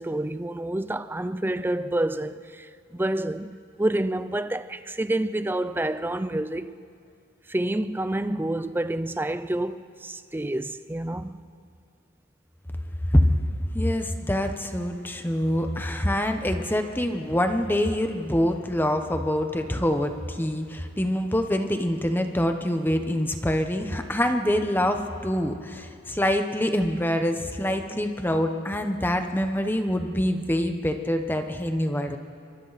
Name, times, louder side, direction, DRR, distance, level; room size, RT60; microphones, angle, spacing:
voice 1, 0.0-6.7 7.5-11.4, right 1 dB, 10° right, 0.4 m, -28 dB
voice 2, 13.7-32.2, left 1 dB, 10° left, 1.0 m, -25 dB
26.5 x 24.0 x 4.2 m
head